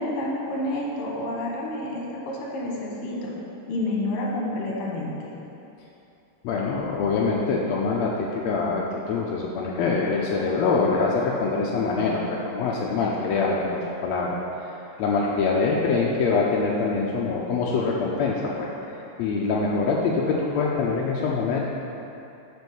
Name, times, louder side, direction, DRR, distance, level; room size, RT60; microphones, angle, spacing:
voice 1, 0.0-3.3 3.7-5.3, left 1 dB, 55° left, -3 dB, 1.8 m, -29 dB
voice 2, 6.4-14.4 15.0-18.7 19.2-21.6, left 4 dB, 90° left, -3 dB, 1.5 m, -24 dB
6.2 x 5.3 x 6.9 m, 2.9 s
omnidirectional pair, 3.9 m